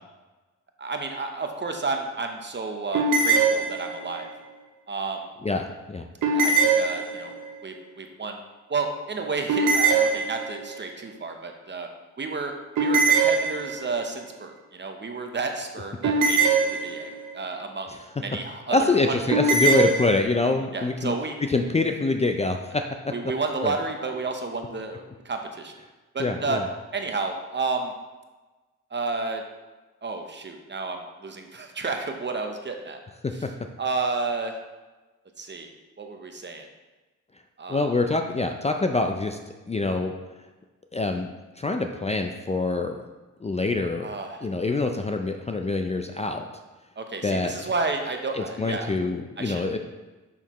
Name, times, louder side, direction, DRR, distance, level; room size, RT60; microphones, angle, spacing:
voice 1, 0.8-4.3 4.9-5.3 6.3-7.3 7.6-8.4 8.7-11.9 12.2-12.5 12.8-19.2 19.6-19.8 20.7-21.3 23.1-25.7 26.1-26.6 26.9-27.9 28.9-29.4 30.0-33.0 33.8-34.5 35.4-35.7 36.0-36.7 37.6-37.9 44.0-44.5 47.0-48.9 49.4-49.8, right 3 dB, 35° right, 4 dB, 0.8 m, -31 dB
sound 1, 2.9-4.2 6.2-7.5 9.5-10.8 12.8-14.1 16.0-17.3 19.3-20.2, right 4 dB, 85° right, 0.8 m, -22 dB
voice 2, 5.4-6.1 17.9-18.0 18.7-21.1 21.5-23.1 23.6-23.7 26.2-26.7 33.4-33.5 37.7-39.4 39.7-40.1 40.9-41.3 41.6-43.0 43.4-44.1 44.4-46.4 47.2-47.7 48.3-49.8, left 3 dB, 20° left, 5 dB, 0.4 m, -25 dB
6.4 x 5.8 x 3.0 m, 1.2 s
cardioid pair, 75°, 30 cm